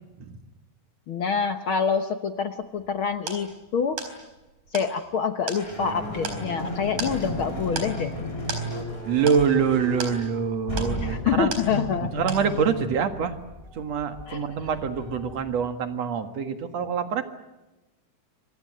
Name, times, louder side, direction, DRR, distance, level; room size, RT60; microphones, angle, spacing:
voice 1, 1.1-4.0 4.7-8.1 11.0-12.1 14.3-14.5, left 6 dB, 60° left, 8 dB, 1.5 m, -26 dB
sound 1, 2.6-12.0 12.3-12.9, right 4 dB, 75° right, 5.7 m, -37 dB
sound 2, 5.6-15.7, equal, 15° left, 5.4 m, -34 dB
voice 2, 9.1-11.5 12.1-13.4 13.7-17.2, right 6 dB, 60° right, 8 dB, 2.8 m, -25 dB
27.0 x 23.5 x 7.6 m, 1.1 s
omnidirectional pair, 3.4 m